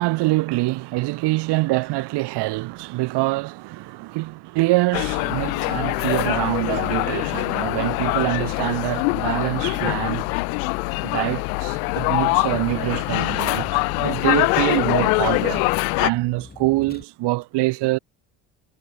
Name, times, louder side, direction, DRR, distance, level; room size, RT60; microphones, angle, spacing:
voice 1, 0.0-10.4 11.0-18.0, right 20 dB, 75° right, 1.5 m, -25 dB
sound 1, 4.9-16.1, left 40 dB or more, 90° left, 0.9 m, -23 dB
Vehicle, 11.6-17.0, left 3 dB, 20° left, 8.0 m, -43 dB
supercardioid pair, 80°, 41 cm